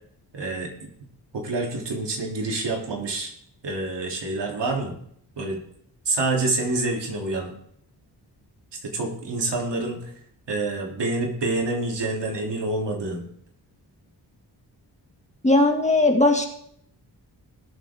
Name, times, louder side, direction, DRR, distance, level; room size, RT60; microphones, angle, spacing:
voice 1, 0.3-0.9 1.3-3.3 3.6-5.0 5.4-5.6 6.1-7.5 8.8-10.1 10.5-13.2, right 2 dB, 80° right, 0 dB, 3.4 m, -27 dB
voice 2, 15.4-16.5, left 2 dB, 15° left, 2 dB, 2.3 m, -18 dB
21.0 x 7.6 x 3.7 m, 0.67 s
wide cardioid pair, 85°, 41 cm